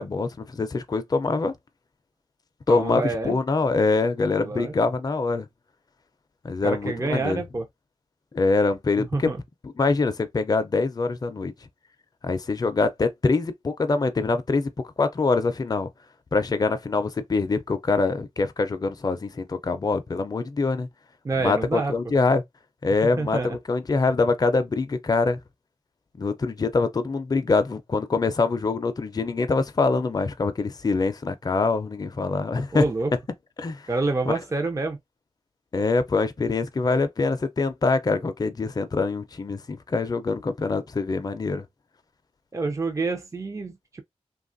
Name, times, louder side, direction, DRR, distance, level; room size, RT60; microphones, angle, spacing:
voice 1, 0.0-1.5 2.7-5.5 6.4-7.4 8.3-9.3 9.6-11.5 12.2-14.7 15.0-15.9 16.3-20.9 21.3-22.4 22.8-25.4 26.2-32.9 33.6-33.8 34.3-34.4 35.7-41.6, left 3 dB, 35° left, 0.5 m, -24 dB
voice 2, 2.7-3.3 4.4-4.7 6.6-7.7 9.0-9.4 21.2-21.9 23.2-23.6 32.7-33.1 33.9-35.0 42.5-44.0, right 3 dB, 30° right, 0.5 m, -27 dB
3.0 x 2.3 x 2.5 m
wide cardioid pair, 85°, 11 cm